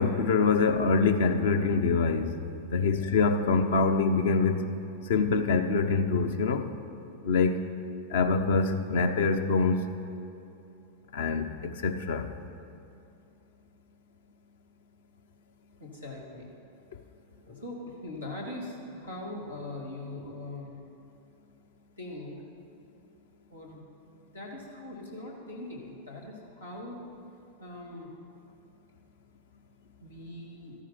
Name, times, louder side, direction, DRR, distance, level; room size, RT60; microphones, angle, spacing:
voice 1, 0.0-2.4 2.7-4.7 5.1-6.7 7.2-7.6 8.1-9.8 11.1-12.3, left 4 dB, 60° left, 8 dB, 0.8 m, -25 dB
voice 2, 2.7-3.1 15.8-16.5 17.4-20.8 22.0-22.4 23.5-27.0 27.6-28.1 30.0-30.7, left 2 dB, 80° left, -3 dB, 2.5 m, -41 dB
13.5 x 9.8 x 5.8 m, 2.6 s
figure-of-eight pair, 90°, 0 cm